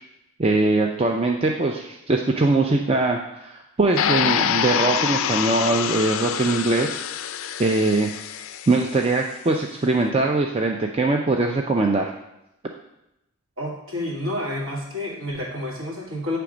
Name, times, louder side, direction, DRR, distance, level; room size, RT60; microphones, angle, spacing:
voice 1, 0.4-7.0 7.6-8.1 8.7-12.1, right 2 dB, 25° right, 2 dB, 0.4 m, -21 dB
sound 1, 4.0-9.0, left 8 dB, 65° left, 0.3 m, -26 dB
voice 2, 13.6-16.4, left 1 dB, 65° right, -2 dB, 1.7 m, -29 dB
8.3 x 3.4 x 5.0 m, 0.86 s
head